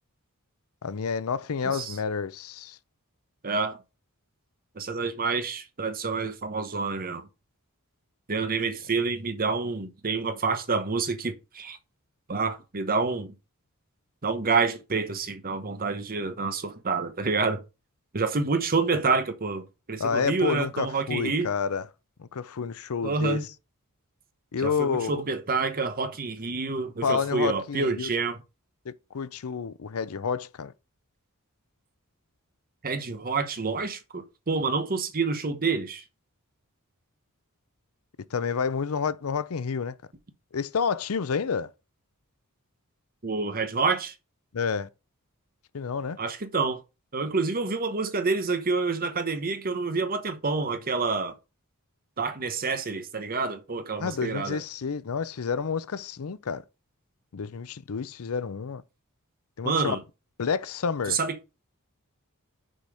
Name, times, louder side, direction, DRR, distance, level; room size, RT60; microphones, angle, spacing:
voice 1, 0.8-2.8 20.0-21.8 22.2-23.4 24.5-25.2 27.0-28.1 28.9-30.7 38.3-39.9 40.5-41.7 44.5-44.9 45.7-46.2 54.0-56.6 57.3-58.8 59.6-60.0 60.4-61.2, left 6 dB, 70° left, 0.5 m, -29 dB
voice 2, 3.4-3.8 4.8-7.2 8.3-11.8 12.3-13.3 14.2-17.6 18.1-21.5 23.0-23.4 24.6-28.4 32.8-36.0 43.2-44.1 46.2-46.8 47.1-51.3 52.2-54.6 59.6-60.0 61.1-61.3, right 4 dB, 40° right, 1.0 m, -28 dB
6.4 x 4.3 x 4.9 m
head